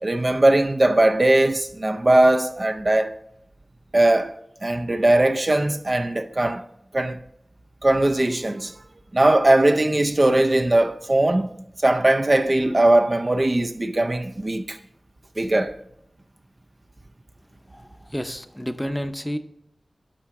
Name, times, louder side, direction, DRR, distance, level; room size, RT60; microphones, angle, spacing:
voice 1, 0.0-3.2 3.9-6.6 6.9-7.2 7.8-8.7 9.1-11.6 11.8-14.8 15.4-15.8, right 1 dB, 40° right, 0.5 m, -19 dB
voice 2, 17.7-19.4, equal, 10° left, 0.7 m, -30 dB
11.0 x 5.7 x 3.6 m
wide cardioid pair, 60°, 0 cm